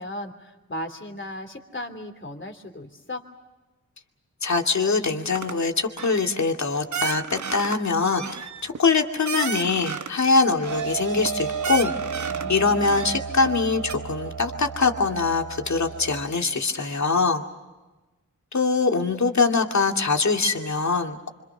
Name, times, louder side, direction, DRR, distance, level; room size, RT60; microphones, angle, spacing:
voice 1, 0.0-3.3 12.3-13.0, left 1 dB, 35° left, 6 dB, 3.1 m, -36 dB
voice 2, 4.4-11.9 12.5-17.4 18.5-21.2, left 4 dB, 60° left, 3 dB, 2.4 m, -23 dB
sound 1, 5.3-5.6 5.9-6.3 6.9-7.8 8.1-10.2 10.6-11.3 11.6-12.5 12.8-13.6 13.9-14.0, right 6 dB, 60° right, 1.0 m, -32 dB
sound 2, 10.6-16.2, right 6 dB, 80° right, 4.0 m, -32 dB
26.5 x 26.0 x 6.1 m, 1.1 s
cardioid pair, 65°, 32 cm